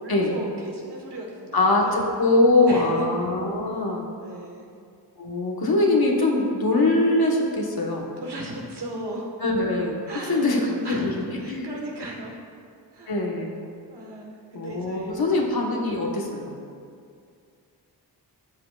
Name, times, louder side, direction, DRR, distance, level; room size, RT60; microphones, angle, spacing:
voice 1, 0.0-2.0 2.7-3.1 4.2-4.7 8.1-9.3 10.0-10.4 10.8-12.4 12.9-13.2 13.9-15.2, right 1 dB, 75° right, -1 dB, 1.6 m, -36 dB
voice 2, 1.5-4.1 5.2-8.1 9.4-10.0 10.3-11.6 13.1-13.6 14.5-16.5, left 2 dB, 65° left, -1 dB, 1.4 m, -22 dB
12.0 x 7.7 x 2.5 m, 2.3 s
wide cardioid pair, 70°, 40 cm